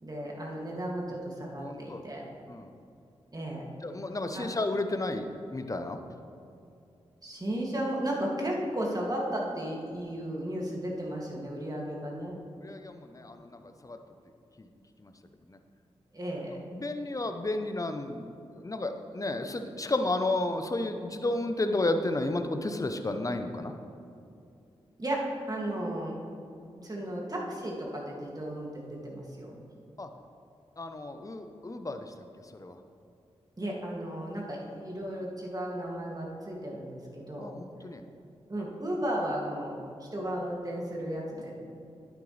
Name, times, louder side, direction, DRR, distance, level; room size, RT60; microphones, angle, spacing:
voice 1, 0.0-2.3 3.3-3.7 4.3-4.5 7.2-12.4 16.1-16.6 25.0-26.1 26.8-29.6 33.6-37.5 38.5-41.5, right 1 dB, 35° right, -2 dB, 2.5 m, -34 dB
voice 2, 1.6-2.0 2.5-2.7 3.8-6.0 12.6-13.4 13.8-14.0 16.7-18.3 18.6-23.7 30.0-30.1 30.8-32.0 32.6-32.7 37.4-38.0, left 2 dB, 30° left, 7 dB, 0.9 m, -32 dB
11.0 x 9.2 x 3.4 m, 2.6 s
supercardioid pair, 40°, 11 cm